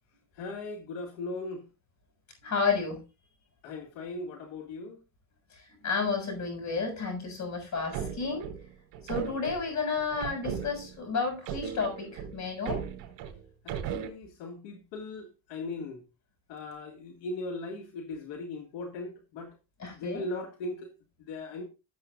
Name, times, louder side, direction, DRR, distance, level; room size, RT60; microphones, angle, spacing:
voice 1, 0.4-1.6 3.6-5.0 13.6-16.0 16.5-19.5 19.9-20.9 21.3-21.6, left 2 dB, 80° left, 1.9 m, -38 dB
voice 2, 2.4-3.0 5.5-8.5 9.0-12.8 19.8-20.2, left 4 dB, 40° left, 6.8 m, -31 dB
sound 1, 7.7-11.0 11.5-14.1, right 8 dB, 70° right, 4.4 m, -37 dB
16.5 x 7.8 x 2.4 m
cardioid pair, 130°, 43 cm